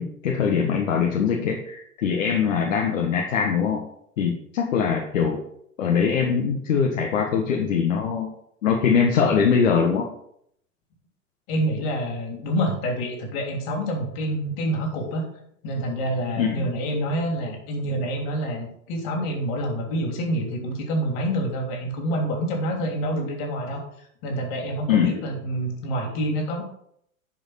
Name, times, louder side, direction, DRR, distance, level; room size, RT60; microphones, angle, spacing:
voice 1, 0.0-3.8 4.2-5.4 5.8-8.3 8.6-10.1 16.3-16.7 24.9-25.1, left 6 dB, 65° left, 1 dB, 1.6 m, -22 dB
voice 2, 11.5-15.2 15.6-23.8 24.2-26.6, equal, 45° left, 2 dB, 3.3 m, -27 dB
10.5 x 5.2 x 5.9 m, 0.70 s
figure-of-eight pair, 95°, 42 cm